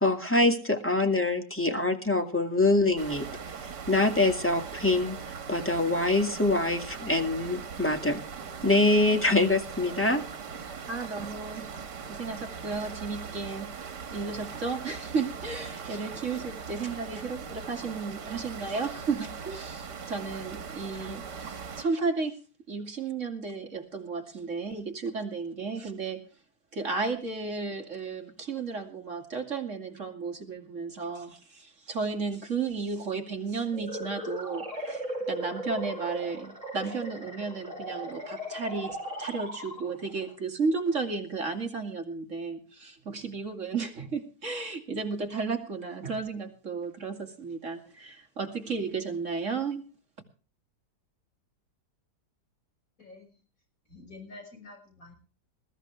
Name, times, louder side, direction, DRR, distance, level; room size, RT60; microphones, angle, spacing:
voice 1, 0.0-3.3 3.9-8.2 8.6-10.2, left 2 dB, 5° left, 3 dB, 1.9 m, -24 dB
sound 1, 3.0-21.8, right 6 dB, 80° right, 2.1 m, -40 dB
voice 2, 10.9-11.6 12.1-13.7 14.1-22.3 22.7-26.2 26.7-49.8, right 4 dB, 45° right, 4 dB, 2.7 m, -33 dB
sound 2, 33.7-40.2, right 1 dB, 20° right, 7.2 m, -37 dB
voice 3, 53.9-55.1, left 3 dB, 50° left, 1 dB, 6.9 m, -48 dB
21.0 x 14.0 x 3.4 m, 0.39 s
omnidirectional pair, 1.8 m